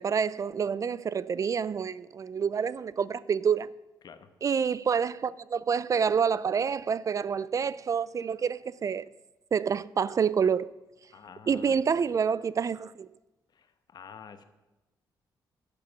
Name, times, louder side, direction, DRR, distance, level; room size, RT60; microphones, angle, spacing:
voice 1, 0.0-3.8 4.4-9.1 9.5-10.7 11.5-13.1, right 6 dB, 40° right, 0.3 m, -28 dB
voice 2, 11.1-11.8 13.5-14.5, left 7 dB, 55° left, 1.0 m, -48 dB
11.0 x 6.9 x 6.9 m
cardioid pair, 75°, 8 cm